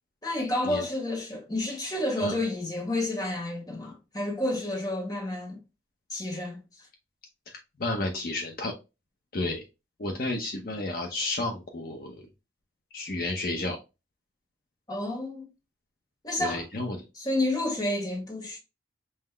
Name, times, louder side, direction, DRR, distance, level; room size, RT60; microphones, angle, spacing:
voice 1, 0.2-5.6 6.1-6.6 14.9-15.5 16.2-16.7 17.1-18.6, left 1 dB, 20° left, 1.0 m, -30 dB
voice 2, 7.8-8.7 9.3-9.6 10.0-12.2 12.9-13.8 16.4-17.0, left 2 dB, 50° left, 0.7 m, -31 dB
5.6 x 2.0 x 3.3 m
head